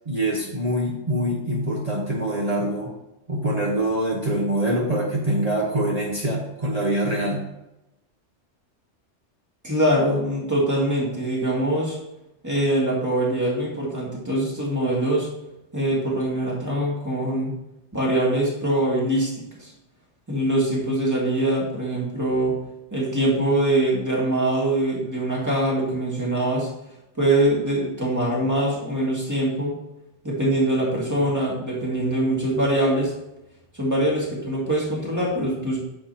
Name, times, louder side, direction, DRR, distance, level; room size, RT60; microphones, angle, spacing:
voice 1, 0.1-2.9 3.3-7.4, right 1 dB, 35° right, -2 dB, 1.1 m, -24 dB
voice 2, 9.6-12.0 12.4-15.3 15.7-17.6 17.9-19.7 20.3-22.5 22.9-26.7 27.2-29.7 30.2-33.1 33.7-35.8, right 1 dB, 15° right, -4 dB, 2.2 m, -23 dB
9.5 x 6.7 x 2.9 m, 0.91 s
omnidirectional pair, 1.2 m